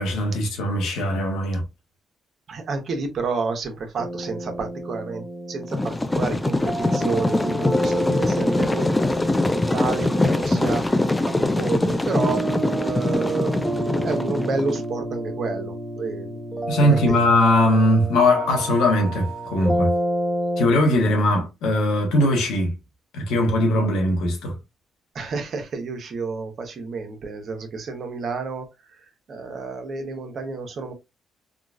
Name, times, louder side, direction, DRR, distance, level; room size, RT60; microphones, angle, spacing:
voice 1, 0.0-1.6 16.7-19.9 20.6-22.8 23.1-24.6, left 1 dB, 90° left, 1.2 m, -20 dB
voice 2, 2.5-8.9 9.4-11.0 11.3-12.4 12.8-16.3 16.7-17.2 25.1-28.6 29.3-30.9, right 4 dB, 55° right, 0.9 m, -30 dB
sound 1, 4.0-20.7, right 1 dB, 5° right, 0.7 m, -29 dB
sound 2, 5.7-14.8, left 2 dB, 15° left, 0.4 m, -23 dB
3.8 x 2.3 x 2.4 m
cardioid pair, 90°, 0 cm